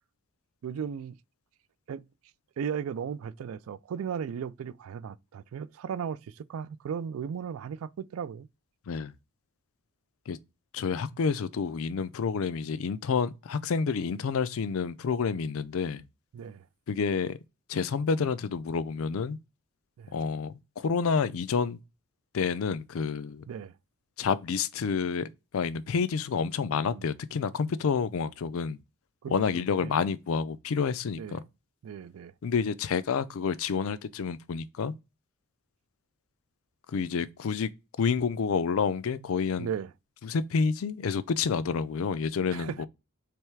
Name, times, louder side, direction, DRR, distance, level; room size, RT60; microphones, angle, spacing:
voice 1, 0.6-1.2 1.9-2.0 2.6-8.5 16.3-16.7 20.0-20.1 23.5-23.7 26.8-27.0 29.2-29.3 29.8-30.0 31.2-31.4 31.8-32.3 39.6-39.9 42.5-42.9, right 7 dB, 70° right, 0.3 m, -36 dB
voice 2, 10.7-16.0 16.9-17.4 17.7-19.4 20.1-21.8 22.3-23.4 24.2-25.3 25.5-28.8 29.3-31.4 32.4-34.9 36.9-37.7 38.0-39.7 40.2-42.9, left 5 dB, 65° left, 0.4 m, -29 dB
3.4 x 3.1 x 4.5 m
head